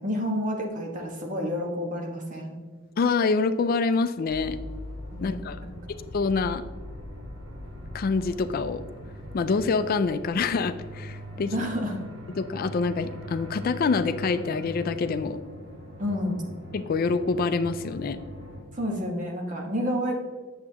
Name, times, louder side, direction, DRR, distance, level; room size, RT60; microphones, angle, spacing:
voice 1, 0.0-2.6 5.1-5.7 11.4-12.0 16.0-16.4 18.7-20.2, equal, 40° right, 1 dB, 1.4 m, -30 dB
voice 2, 3.0-4.6 5.2-5.6 6.1-6.6 7.9-8.8 9.3-11.5 12.4-15.4 16.7-18.2, left 4 dB, 45° left, 11 dB, 0.3 m, -26 dB
sound 1, 4.3-18.6, left 1 dB, 65° right, 1.9 m, -41 dB
8.8 x 7.2 x 2.9 m, 1.5 s
head